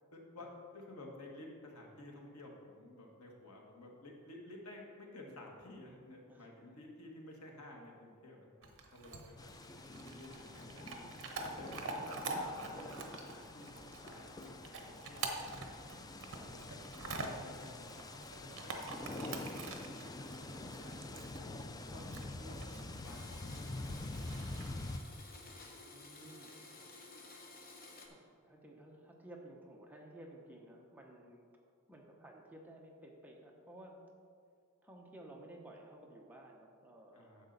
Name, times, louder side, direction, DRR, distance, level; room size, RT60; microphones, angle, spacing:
voice 1, 0.1-0.5 0.7-9.7 10.0-10.8 11.5-12.9 13.2-14.6 14.8-15.6 16.5-17.9 18.4-21.1 21.3-21.5 21.8-25.2 37.1-37.5, left 1 dB, 85° left, 0 dB, 1.6 m, -53 dB
voice 2, 6.3-6.8 9.8-11.2 15.4-15.6 16.3-16.5 25.9-27.0 28.1-31.5 31.9-34.0 34.8-37.5, right 1 dB, 10° right, 0 dB, 0.9 m, -55 dB
Chewing mastication / Dog, 8.6-25.1, right 3 dB, 60° right, 1.0 m, -46 dB
sound 1, 9.4-25.0, left 2 dB, 15° left, 0.4 m, -46 dB
Domestic sounds home sounds, 23.0-28.1, left 3 dB, 45° left, 1.1 m, -54 dB
10.0 x 7.4 x 4.0 m, 2.2 s
head